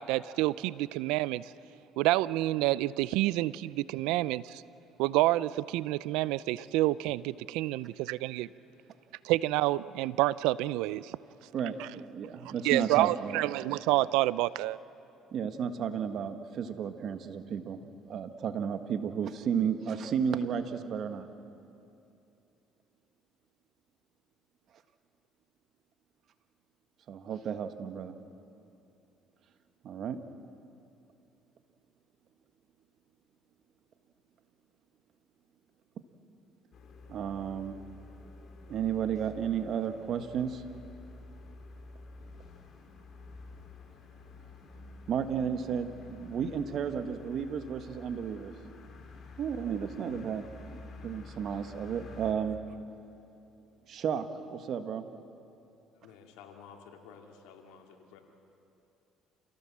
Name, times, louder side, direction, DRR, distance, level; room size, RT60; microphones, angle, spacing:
voice 1, 0.0-1.5 2.0-4.6 5.0-8.5 9.2-11.2 11.8-11.9 12.6-14.8, right 17 dB, 85° right, 19 dB, 0.5 m, -28 dB
voice 2, 11.5-13.5 15.3-17.8 18.1-21.3 27.1-28.1 29.8-30.2 37.1-37.8 38.7-40.6 45.1-48.5 49.4-52.6 53.9-55.1, right 7 dB, 60° right, 9 dB, 1.5 m, -33 dB
sound 1, 36.7-52.3, left 3 dB, 50° left, 3.1 m, -50 dB
voice 3, 56.0-58.2, left 6 dB, 90° left, 3 dB, 2.6 m, -52 dB
28.5 x 17.0 x 7.4 m, 2.7 s
supercardioid pair, 90°, 0 cm